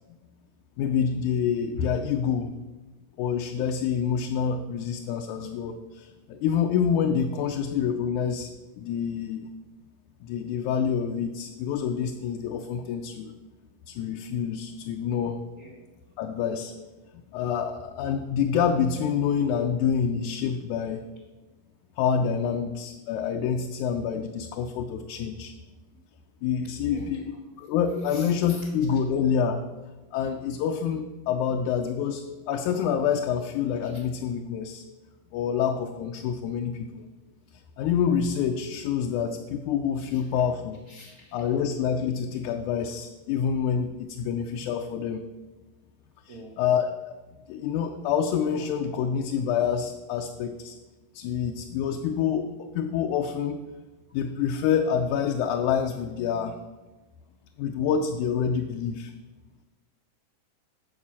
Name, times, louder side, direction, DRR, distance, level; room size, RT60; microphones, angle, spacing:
voice 1, 0.8-2.5 3.2-8.5 8.8-9.5 10.2-13.4 13.9-15.4 16.2-16.7 17.1-21.0 22.0-25.5 26.4-29.6 30.1-34.8 35.3-37.1 37.8-40.8 41.3-45.2 46.3-47.2 47.5-50.8 51.1-53.6 54.1-56.6 57.6-59.1, left 7 dB, 75° left, 4 dB, 1.9 m, -27 dB
voice 2, 28.1-28.7 40.0-40.2 40.9-41.4 46.3-46.5, left 2 dB, 65° right, -1 dB, 0.8 m, -46 dB
11.5 x 4.9 x 7.3 m, 1.2 s
omnidirectional pair, 3.8 m